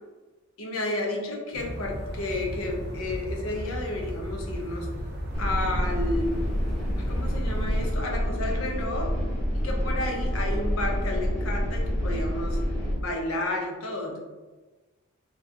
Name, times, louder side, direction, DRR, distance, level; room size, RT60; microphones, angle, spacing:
voice 1, 0.6-4.9 5.4-6.5 7.1-9.1 9.5-12.6 12.9-14.2, left 2 dB, 75° left, 0 dB, 0.5 m, -31 dB
sound 1, 1.5-7.9, equal, 50° right, 0.4 m, -35 dB
sound 2, 5.3-12.9, equal, 5° left, 0.8 m, -28 dB
2.7 x 2.2 x 2.5 m, 1.2 s
head